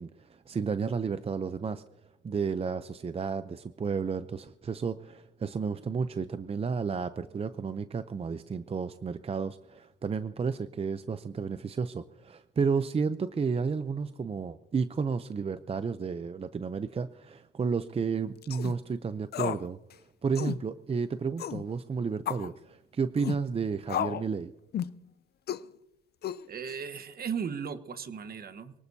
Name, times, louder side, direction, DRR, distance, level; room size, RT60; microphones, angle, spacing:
voice 1, 0.0-1.8 2.2-19.8 20.2-24.5, right 5 dB, 30° right, 12 dB, 0.6 m, -32 dB
sound 1, 18.4-18.7 19.3-19.7 19.9-20.0 20.3-20.6 21.4-21.6 22.3-22.5 23.2-23.4 23.9-24.3 24.7-25.0 25.5-25.7 26.2-26.7, left 10 dB, 55° left, 0.5 m, -33 dB
voice 2, 26.5-28.7, right 7 dB, 50° right, 10 dB, 1.2 m, -36 dB
23.5 x 18.5 x 2.8 m, 0.92 s
cardioid pair, 90°, 20 cm